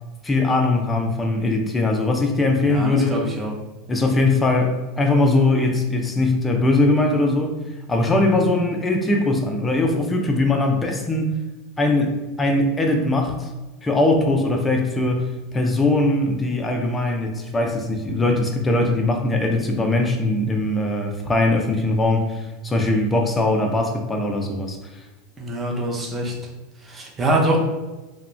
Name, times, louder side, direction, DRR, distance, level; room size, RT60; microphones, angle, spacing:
voice 1, 0.2-3.2 3.9-7.5 7.9-11.3 11.8-13.5 13.8-24.8, left 2 dB, 15° left, 3 dB, 0.4 m, -21 dB
voice 2, 2.6-3.5 25.4-26.3 26.8-27.6, right 1 dB, 20° right, -2 dB, 0.7 m, -24 dB
2.3 x 2.1 x 3.1 m, 1.1 s
hypercardioid pair, 100°, 0 cm